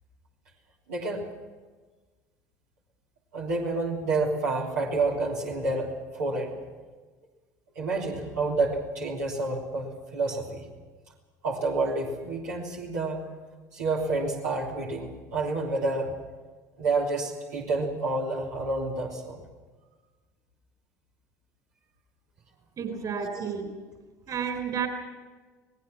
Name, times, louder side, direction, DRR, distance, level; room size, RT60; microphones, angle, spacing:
voice 1, 0.9-1.3 3.3-6.6 7.7-10.7 11.4-13.3 13.7-16.1 16.8-19.4 23.3-23.5, right 3 dB, 75° right, -3 dB, 3.2 m, -29 dB
voice 2, 22.8-23.7 24.3-24.9, right 7 dB, 40° right, 6 dB, 4.3 m, -31 dB
27.5 x 18.5 x 6.0 m, 1.4 s
figure-of-eight pair, 65°, 9 cm